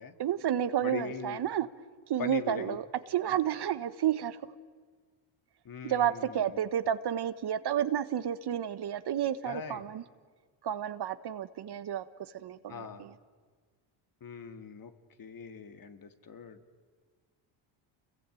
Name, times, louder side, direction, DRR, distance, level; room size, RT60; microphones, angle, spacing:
voice 1, 0.2-1.7 2.1-4.4 5.8-10.0 10.6-12.0 12.3-13.1, right 10 dB, 55° right, 12 dB, 1.4 m, -31 dB
voice 2, 0.8-1.4 2.2-2.8 3.3-3.4 5.6-6.6 9.4-9.8 12.7-13.0 14.2-14.9 15.2-16.6, left 6 dB, 45° left, 7 dB, 2.5 m, -41 dB
29.0 x 22.0 x 9.2 m, 1.5 s
supercardioid pair, 80°, 48 cm